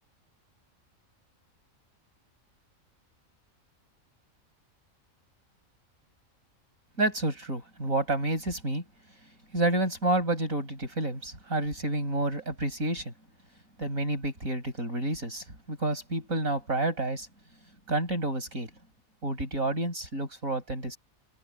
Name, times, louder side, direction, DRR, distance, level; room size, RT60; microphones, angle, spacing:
voice 1, 7.0-8.8 9.5-13.1 13.8-17.3 17.9-18.7 19.2-21.0, right 2 dB, 85° right, 7.8 m, -29 dB
open air
omnidirectional pair, 1.4 m